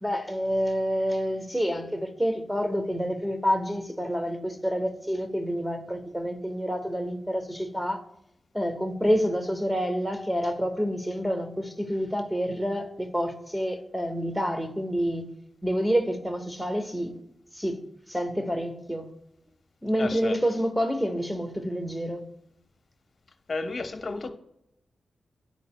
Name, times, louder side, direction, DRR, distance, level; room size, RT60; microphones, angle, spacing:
voice 1, 0.0-8.0 8.5-15.3 15.6-17.1 17.5-17.8 18.1-19.1 19.8-22.3, equal, 5° right, 1.3 m, -28 dB
voice 2, 20.0-20.4 23.5-24.3, left 3 dB, 50° left, 0.9 m, -32 dB
10.5 x 4.0 x 2.2 m
supercardioid pair, 40°, 0 cm